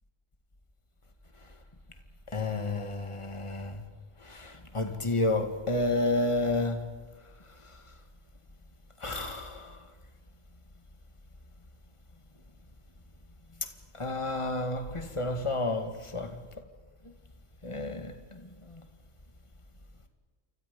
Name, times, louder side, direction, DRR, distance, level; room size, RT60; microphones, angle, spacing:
voice 1, 2.3-3.8 4.2-6.9 9.0-9.8 14.0-16.4 17.6-18.4 18.7-18.8, left 2 dB, 25° left, 2.2 m, -31 dB
29.5 x 26.0 x 5.5 m
omnidirectional pair, 1.2 m